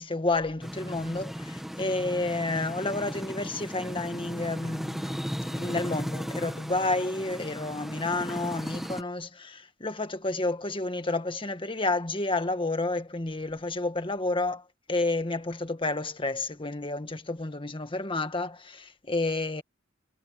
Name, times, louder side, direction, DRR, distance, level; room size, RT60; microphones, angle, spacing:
voice 1, 0.0-14.6 14.9-19.6, left 2 dB, 25° left, 1.6 m, -30 dB
sound 1, 0.6-9.0, equal, ahead, 1.0 m, -36 dB
head